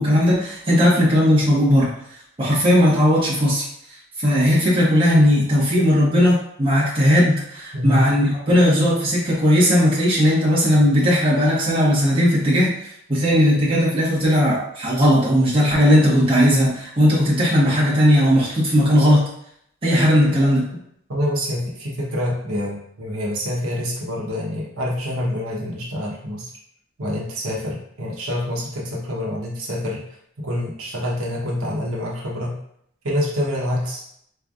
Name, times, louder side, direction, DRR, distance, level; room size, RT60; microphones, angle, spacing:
voice 1, 0.0-1.9 2.4-3.6 4.2-12.7 13.1-19.2 19.8-20.6, equal, 25° right, -7 dB, 1.3 m, -17 dB
voice 2, 21.1-26.5 27.0-30.0 30.4-32.6 33.0-34.0, left 1 dB, 85° right, -3 dB, 1.0 m, -26 dB
4.0 x 3.3 x 2.4 m, 0.70 s
head